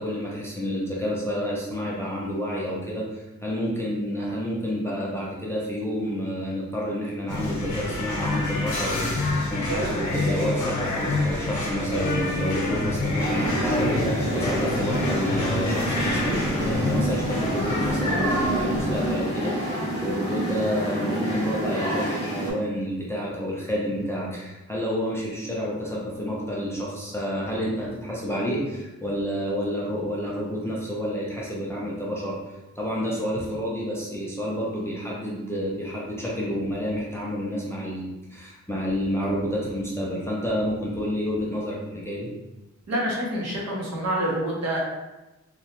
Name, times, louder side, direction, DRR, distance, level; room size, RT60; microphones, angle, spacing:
voice 1, 0.0-42.3, equal, 10° left, -5 dB, 0.4 m, -29 dB
sound 1, 7.3-19.1, left 2 dB, 80° left, 0.8 m, -27 dB
sound 2, 13.2-22.5, right 1 dB, 35° right, 1.0 m, -27 dB
voice 2, 42.9-44.8, right 1 dB, 60° right, -3 dB, 0.8 m, -27 dB
2.9 x 2.2 x 2.8 m, 1.0 s
wide cardioid pair, 175°, 29 cm